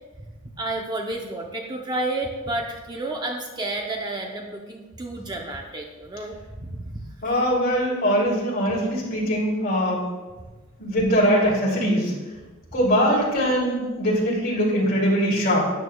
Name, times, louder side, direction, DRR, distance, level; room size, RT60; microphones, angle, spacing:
voice 1, 0.6-7.0, right 2 dB, 20° right, 1 dB, 0.7 m, -31 dB
voice 2, 7.2-10.0 10.8-12.1 12.7-15.6, equal, 45° left, -4 dB, 2.9 m, -22 dB
12.5 x 9.3 x 2.3 m, 1.3 s
head